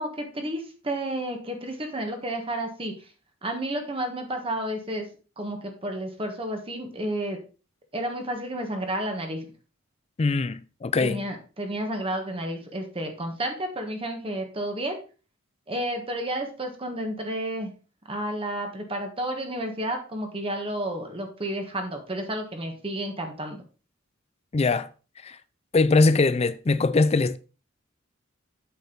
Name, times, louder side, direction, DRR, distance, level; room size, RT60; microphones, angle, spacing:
voice 1, 0.0-2.9 3.4-5.1 5.4-7.4 7.9-9.5 11.0-15.0 15.7-17.7 18.1-23.6, right 1 dB, 30° right, 1.4 m, -31 dB
voice 2, 10.2-11.2 24.5-24.9 25.2-25.4 25.7-27.4, left 3 dB, 30° left, 0.4 m, -22 dB
8.3 x 6.4 x 3.9 m
head